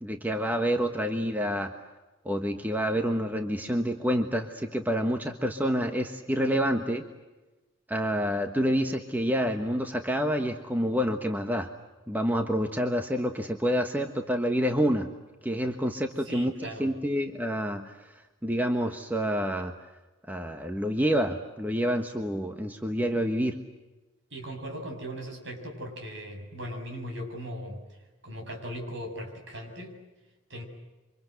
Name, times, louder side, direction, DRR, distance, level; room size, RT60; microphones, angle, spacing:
voice 1, 0.0-1.7 2.2-7.0 7.9-11.7 12.1-15.1 15.4-19.7 20.3-23.6, equal, 10° right, 5 dB, 1.3 m, -28 dB
voice 2, 16.2-16.9 24.3-27.8 28.2-29.9 30.5-30.6, equal, 55° right, 3 dB, 7.4 m, -38 dB
28.5 x 25.5 x 8.0 m, 1.1 s
head